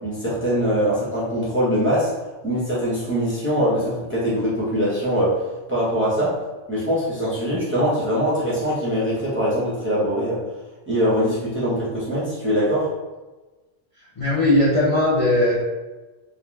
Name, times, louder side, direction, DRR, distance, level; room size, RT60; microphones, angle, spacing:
voice 1, 0.0-2.1 2.4-6.4 6.7-10.4 10.9-12.9, equal, 15° right, -9 dB, 0.7 m, -22 dB
voice 2, 14.2-15.6, left 1 dB, 40° left, -9 dB, 0.6 m, -18 dB
2.4 x 2.1 x 3.1 m, 1.2 s
omnidirectional pair, 1.1 m